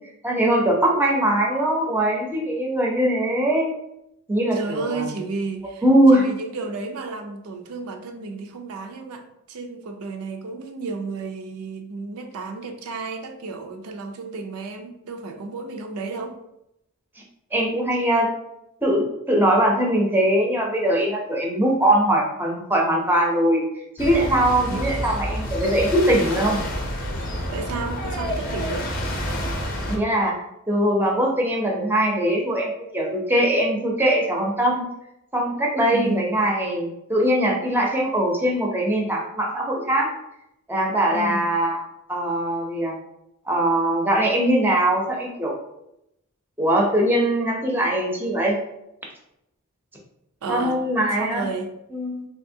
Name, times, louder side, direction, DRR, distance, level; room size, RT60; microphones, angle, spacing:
voice 1, 0.2-3.7 4.3-5.1 5.8-6.2 17.5-18.3 18.8-23.6 24.0-26.7 29.9-30.3 30.7-34.8 35.3-40.1 40.7-41.8 42.1-42.9 43.5-45.5 46.6-48.6 50.5-51.5 51.9-52.3, right 1 dB, 10° right, -1 dB, 0.5 m, -21 dB
voice 2, 4.5-5.8 6.1-16.4 24.6-25.1 27.5-28.9 35.9-36.3 41.1-41.5 50.4-50.8 51.1-51.7, right 4 dB, 85° right, 5 dB, 0.4 m, -32 dB
sound 1, 24.0-30.0, equal, 40° left, 0.5 m, -28 dB
3.5 x 2.7 x 2.6 m, 0.83 s
head